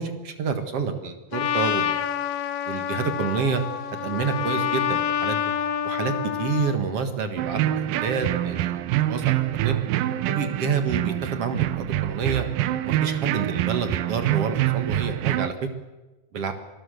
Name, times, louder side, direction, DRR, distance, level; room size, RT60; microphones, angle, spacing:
voice 1, 0.0-2.1 2.7-3.6 4.0-5.5 5.9-6.1 6.4-8.8 9.1-9.8 10.3-12.4 12.8-15.7 16.3-16.5, right 6 dB, 50° right, 7 dB, 2.1 m, -28 dB
Trumpet, 1.3-6.8, left 9 dB, 80° left, 1.4 m, -27 dB
sound 1, 7.4-15.5, right 13 dB, 75° right, 2.3 m, -25 dB
26.0 x 21.0 x 6.6 m, 1.1 s
omnidirectional pair, 4.6 m